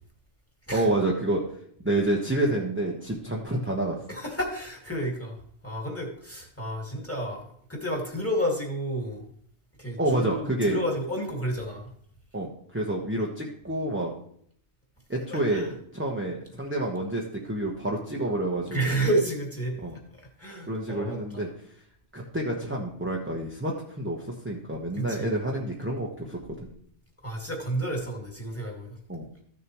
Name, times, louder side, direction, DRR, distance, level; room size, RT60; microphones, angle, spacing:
voice 1, 0.7-1.4 1.8-4.0 10.0-10.8 12.3-14.1 15.1-19.0 19.8-19.9 20.7-21.5 22.1-24.2 24.4-26.7 29.1-29.3, right 1 dB, 10° right, -2 dB, 1.1 m, -28 dB
voice 2, 4.1-9.3 9.8-11.9 15.3-15.7 18.7-19.8 20.2-21.5 24.9-25.3 27.2-29.0, right 1 dB, 10° left, 0 dB, 2.0 m, -31 dB
14.5 x 6.9 x 3.1 m, 0.65 s
omnidirectional pair, 1.3 m